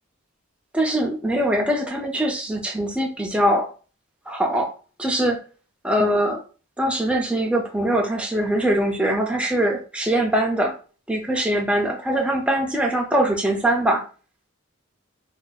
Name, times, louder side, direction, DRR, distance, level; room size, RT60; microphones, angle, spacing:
voice 1, 0.7-3.7 4.3-4.7 5.0-5.4 5.8-6.4 6.8-10.8 11.1-14.0, right 1 dB, 5° right, 0.4 m, -22 dB
2.6 x 2.3 x 3.9 m
head